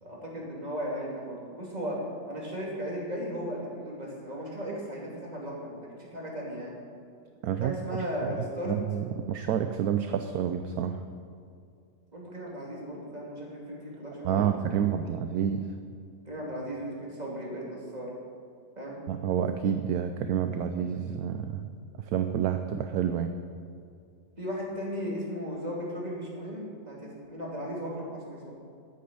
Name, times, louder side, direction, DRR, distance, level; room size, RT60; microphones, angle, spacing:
voice 1, 0.0-6.8 7.6-8.7 12.1-14.9 16.2-18.1 18.8-19.0 24.4-28.5, equal, 25° right, -4 dB, 2.8 m, -36 dB
voice 2, 7.4-7.8 8.2-8.3 8.7-11.0 14.2-15.7 19.1-21.7 22.1-23.3, right 9 dB, 70° right, 8 dB, 1.0 m, -29 dB
9.4 x 9.3 x 8.5 m, 2.4 s
omnidirectional pair, 1.8 m